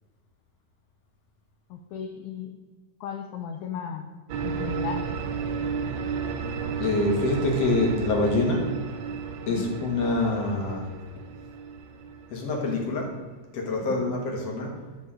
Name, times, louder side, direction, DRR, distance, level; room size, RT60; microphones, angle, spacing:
voice 1, 1.7-2.5 3.0-4.1 4.4-5.0 9.5-9.7 13.9-14.0, left 7 dB, 80° left, 4 dB, 1.7 m, -35 dB
sound 1, 4.3-13.2, right 5 dB, 90° right, 1.5 m, -33 dB
voice 2, 6.8-8.7 9.5-10.9 12.3-13.2 13.5-14.8, left 2 dB, 55° left, 0 dB, 2.2 m, -26 dB
10.5 x 6.9 x 3.6 m, 1.3 s
omnidirectional pair, 4.0 m